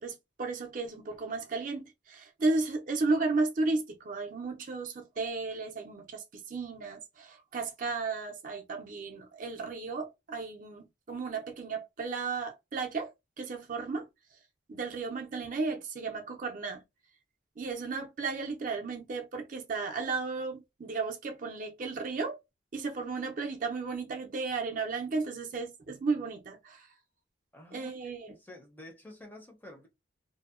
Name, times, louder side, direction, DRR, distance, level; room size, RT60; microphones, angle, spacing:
voice 1, 0.0-13.1 13.4-14.1 14.7-16.8 17.6-22.4 22.7-26.9 27.7-28.3, right 3 dB, 45° right, 0.4 m, -34 dB
voice 2, 27.5-29.9, left 1 dB, 10° left, 0.5 m, -50 dB
2.6 x 2.0 x 2.4 m
head